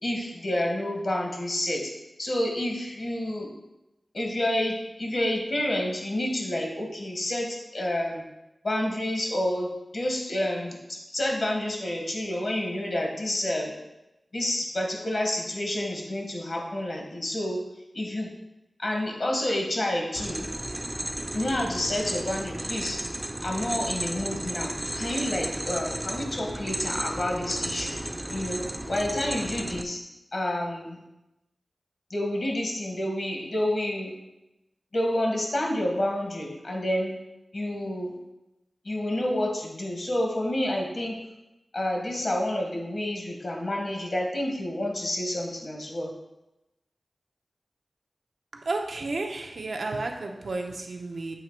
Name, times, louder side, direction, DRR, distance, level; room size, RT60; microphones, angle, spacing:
voice 1, 0.0-1.9 2.2-3.5 4.1-8.2 8.6-9.7 9.9-13.7 14.3-17.6 17.9-18.3 18.8-20.5 21.3-23.0 23.4-28.0 28.3-30.0 30.3-31.0 32.1-34.1 34.9-37.1 37.5-38.1 38.8-41.2 41.7-46.1, left 1 dB, 65° left, 0 dB, 1.1 m, -29 dB
sound 1, 20.1-29.8, right 1 dB, 20° right, 0.4 m, -34 dB
voice 2, 48.5-51.3, right 3 dB, 80° right, 2 dB, 0.7 m, -32 dB
7.6 x 2.9 x 4.5 m, 0.95 s
wide cardioid pair, 75°, 0 cm